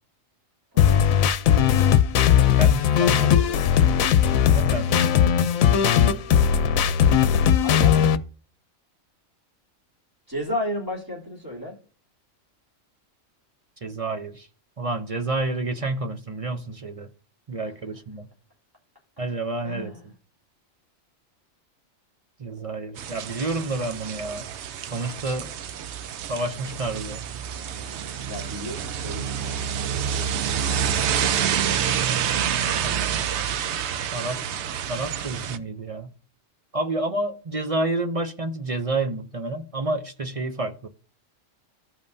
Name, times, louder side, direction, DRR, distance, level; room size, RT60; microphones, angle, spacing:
voice 1, 0.7-1.1 2.8-3.9 7.6-8.1 10.3-11.7 19.6-20.0 28.3-29.8, left 1 dB, 15° right, 2.9 m, -33 dB
sound 1, 0.8-8.2, left 9 dB, 85° left, 1.1 m, -18 dB
voice 2, 2.6-3.4 4.5-5.2 13.8-14.5 14.8-17.1 17.5-18.3 19.2-20.0 22.4-24.5 24.9-25.5 26.3-27.2 32.8-33.6 34.1-34.4 34.9-36.1 36.7-40.9, right 2 dB, 40° right, 0.5 m, -29 dB
sound 2, 23.0-35.6, right 8 dB, 65° right, 0.8 m, -28 dB
15.5 x 5.4 x 2.7 m
omnidirectional pair, 1.4 m